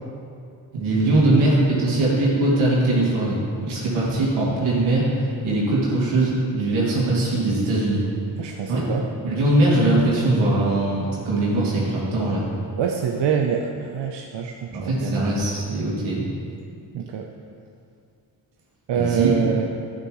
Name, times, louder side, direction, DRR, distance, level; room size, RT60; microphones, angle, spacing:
voice 1, 0.7-8.0 8.4-8.8 9.2-12.4 14.7-16.2 18.9-19.3, right 2 dB, 90° right, -6 dB, 2.5 m, -21 dB
voice 2, 8.4-9.0 12.8-15.4 16.9-17.3 18.9-19.7, right 7 dB, 65° right, 2 dB, 0.8 m, -25 dB
11.0 x 8.8 x 3.1 m, 2.4 s
supercardioid pair, 50°, 47 cm